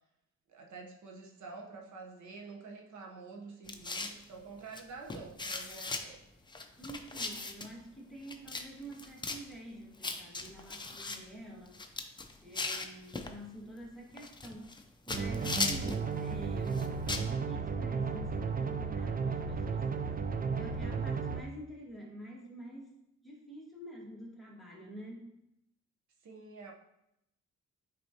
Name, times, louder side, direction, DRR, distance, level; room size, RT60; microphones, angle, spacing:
voice 1, 0.5-6.2 26.2-26.7, right 4 dB, 75° right, 0 dB, 1.1 m, -48 dB
sound 1, 3.7-4.2 4.7-4.8 5.1-6.0 6.5-7.7 8.3-8.6 8.9-9.4 10.0-11.2 11.7-13.3 14.2-14.8 15.1-16.0 16.7-17.3, left 3 dB, 15° left, 0.5 m, -37 dB
voice 2, 6.8-11.8 12.4-14.7 15.1-20.1 20.5-23.0 23.2-25.4, right 1 dB, ahead, -4 dB, 1.8 m, -48 dB
sound 2, 15.1-21.4, right 5 dB, 30° right, 0.5 m, -34 dB
9.7 x 4.1 x 2.9 m, 0.84 s
cardioid pair, 120°, 29 cm